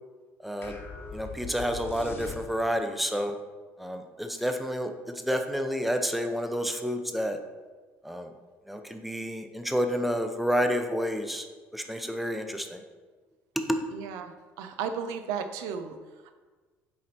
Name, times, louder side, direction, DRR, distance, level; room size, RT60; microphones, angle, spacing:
voice 1, 0.4-0.7 1.1-3.3 3.8-4.9 5.3-7.4 8.0-8.3 8.7-11.5 11.7-12.8 13.7-13.8, equal, ahead, 6 dB, 0.6 m, -29 dB
sound 1, 0.6-2.9, left 5 dB, 40° left, 1.0 m, -41 dB
voice 2, 13.9-14.3 14.6-16.0, right 7 dB, 85° right, 7 dB, 0.5 m, -34 dB
8.2 x 3.2 x 4.3 m, 1.4 s
supercardioid pair, 95°, 6 cm